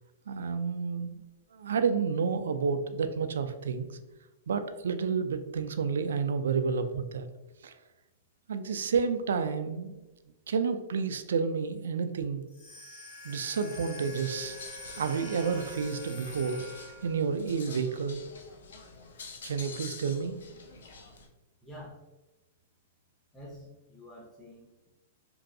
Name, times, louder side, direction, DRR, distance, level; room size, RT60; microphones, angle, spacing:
voice 1, 0.3-1.1 1.5-3.9 4.5-7.3 7.6-7.7 8.5-10.0 10.5-12.4 13.2-14.6 15.0-16.7 17.0-18.2 19.4-20.4, right 5 dB, 90° right, 9 dB, 0.3 m, -30 dB
sound 1, 12.5-17.3, left 1 dB, 65° left, 0.8 m, -45 dB
sound 2, 14.0-21.3, left 4 dB, 85° left, 0.5 m, -48 dB
voice 2, 21.6-22.0 23.3-24.9, left 1 dB, 5° left, -6 dB, 0.6 m, -48 dB
3.0 x 2.6 x 2.6 m, 1.1 s
hypercardioid pair, 155°, 0 cm